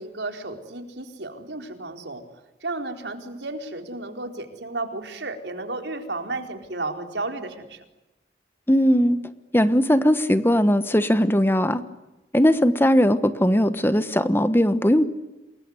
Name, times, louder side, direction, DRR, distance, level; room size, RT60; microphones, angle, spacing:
voice 1, 0.0-2.2 2.6-7.8, right 2 dB, 75° right, 6 dB, 4.2 m, -33 dB
voice 2, 8.7-9.2 9.5-11.8 12.3-15.0, equal, 10° left, 12 dB, 1.2 m, -19 dB
28.5 x 21.0 x 9.7 m, 1.0 s
head